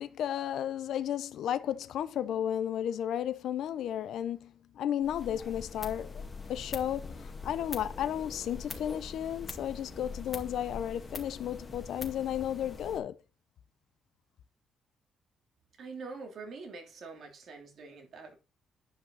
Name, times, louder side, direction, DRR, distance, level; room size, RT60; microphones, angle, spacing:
voice 1, 0.0-6.2 6.5-13.2, left 10 dB, 75° left, 0.7 m, -33 dB
sound 1, 5.0-13.0, left 4 dB, 25° left, 2.1 m, -43 dB
voice 2, 15.8-18.4, right 4 dB, 60° right, 3.0 m, -45 dB
10.5 x 5.5 x 4.1 m
cardioid pair, 90°, 0 cm